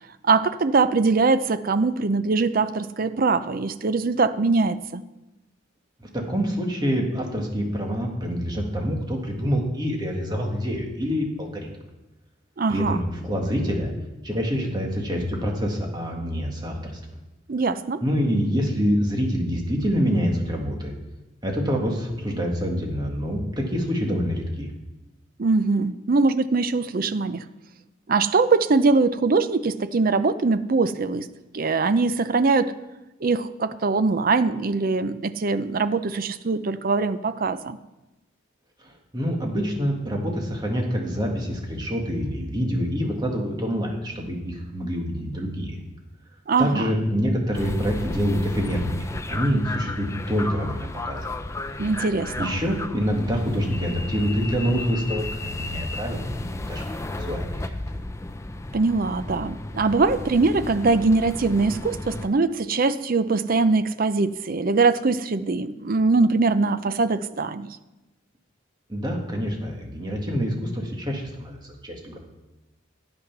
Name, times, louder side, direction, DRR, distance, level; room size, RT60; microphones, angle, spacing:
voice 1, 0.2-5.0 12.6-13.0 17.5-18.0 25.4-27.4 28.1-31.3 31.5-32.7 33.2-37.8 46.5-46.9 51.8-52.5 58.7-67.7, right 3 dB, 45° right, 12 dB, 0.5 m, -22 dB
voice 2, 6.1-11.7 12.7-13.9 14.2-17.0 18.0-20.9 21.4-24.7 38.8-45.8 46.6-51.3 52.4-57.8 68.9-71.6 71.8-72.2, equal, 20° right, 0 dB, 1.9 m, -26 dB
sound 1, 47.5-62.3, left 2 dB, 15° left, 0.4 m, -34 dB
12.5 x 8.2 x 6.0 m, 1.0 s
head